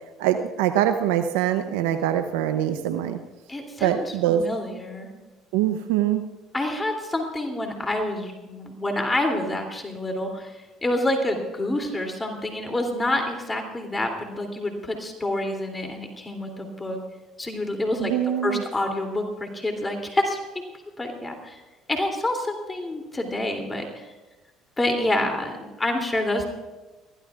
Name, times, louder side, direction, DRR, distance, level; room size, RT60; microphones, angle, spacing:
voice 1, 0.2-3.2 3.8-4.4 5.5-6.2 18.0-18.6, right 11 dB, 85° right, 8 dB, 0.7 m, -23 dB
voice 2, 3.5-5.1 6.5-17.0 17.4-18.1 18.4-20.4 21.0-21.6 21.9-24.1 24.8-26.5, left 1 dB, 20° left, 3 dB, 2.9 m, -27 dB
22.0 x 15.5 x 2.4 m, 1.2 s
supercardioid pair, 75°, 0 cm